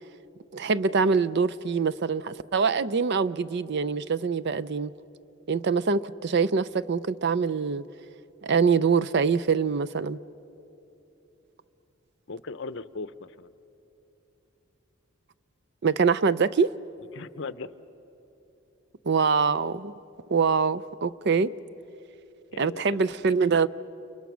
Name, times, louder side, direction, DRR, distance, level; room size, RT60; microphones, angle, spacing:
voice 1, 0.5-4.9 5.5-7.8 8.4-10.2 15.8-16.7 19.0-19.9 20.3-21.5 22.6-23.7, right 5 dB, 55° right, 0.5 m, -24 dB
voice 2, 12.3-13.5 17.1-17.7 22.5-23.1, left 4 dB, 60° left, 0.7 m, -38 dB
29.5 x 29.5 x 6.2 m
head